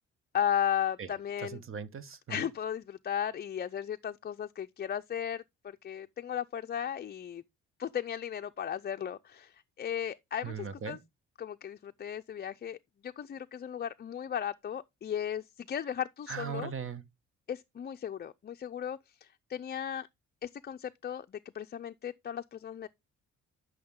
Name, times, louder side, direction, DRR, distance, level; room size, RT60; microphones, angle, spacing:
voice 1, 0.3-1.6 2.3-7.4 7.8-11.0 11.4-16.7 17.5-20.1 20.4-22.9, left 9 dB, 35° left, 0.5 m, -36 dB
voice 2, 1.4-2.5 10.4-11.0 16.3-17.0, right 6 dB, 45° right, 1.3 m, -39 dB
10.0 x 6.3 x 3.6 m
cardioid pair, 90°, 30 cm